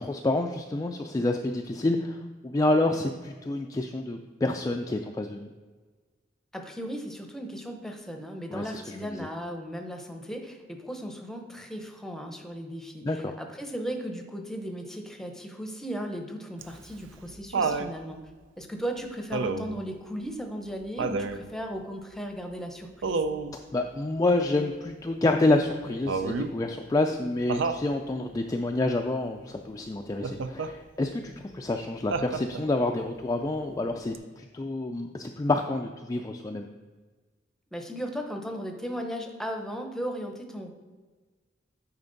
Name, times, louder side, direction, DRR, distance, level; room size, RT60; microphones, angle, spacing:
voice 1, 0.0-5.5 8.5-9.3 13.0-13.2 23.7-36.7, left 2 dB, 20° left, 3 dB, 0.3 m, -28 dB
voice 2, 6.5-18.2 18.6-23.2 37.7-40.7, equal, ahead, 4 dB, 0.7 m, -36 dB
Laughter, 16.6-17.9 19.3-19.8 21.0-21.4 23.0-23.5 26.1-26.6 27.5-27.9 30.2-30.7 32.1-32.8 34.1-34.2, right 4 dB, 80° right, 0.5 m, -29 dB
9.1 x 4.4 x 3.9 m, 1.4 s
head